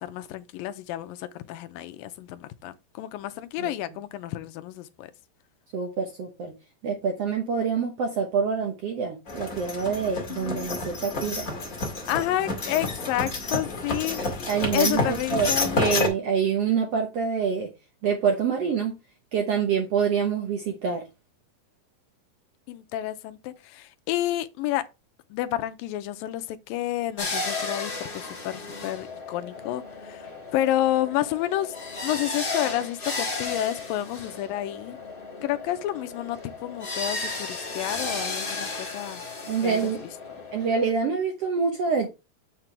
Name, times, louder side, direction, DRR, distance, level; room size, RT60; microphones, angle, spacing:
voice 1, 0.0-5.1 10.3-10.8 12.1-16.0 22.7-24.8 25.3-31.8 32.0-35.0 35.4-39.2 39.6-39.9, left 13 dB, 85° left, 2.4 m, -30 dB
voice 2, 5.7-6.5 6.8-11.5 14.5-15.5 15.8-17.7 18.0-19.0 19.3-21.0 39.5-40.0 40.5-42.1, right 6 dB, 70° right, 1.5 m, -26 dB
sound 1, 9.3-16.1, left 3 dB, 30° left, 1.8 m, -29 dB
sound 2, 27.2-40.9, left 3 dB, 50° left, 0.6 m, -34 dB
7.3 x 6.8 x 3.3 m
omnidirectional pair, 4.1 m